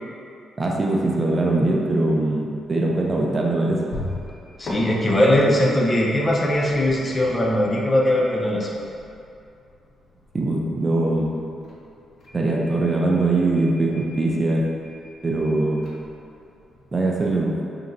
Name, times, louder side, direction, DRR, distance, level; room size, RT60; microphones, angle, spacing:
voice 1, 0.6-3.8 10.3-11.4 12.3-14.6 15.2-15.8 16.9-17.5, right 2 dB, 30° right, -2 dB, 0.5 m, -22 dB
sound 1, 2.6-17.0, left 1 dB, 55° left, 0.8 m, -41 dB
voice 2, 4.6-8.8, left 1 dB, 25° left, -3 dB, 0.6 m, -20 dB
5.2 x 2.8 x 2.5 m, 2.6 s
cardioid pair, 85°, 0 cm